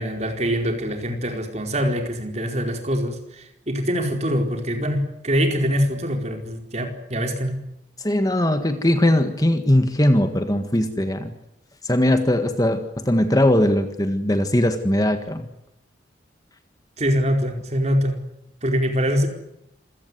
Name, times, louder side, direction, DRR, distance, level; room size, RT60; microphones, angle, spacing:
voice 1, 0.0-7.6 17.0-18.2 18.6-19.3, equal, 35° right, 4 dB, 4.6 m, -24 dB
voice 2, 8.0-11.3 11.8-15.5, left 1 dB, 20° left, 8 dB, 1.7 m, -20 dB
27.0 x 17.0 x 9.6 m, 0.80 s
head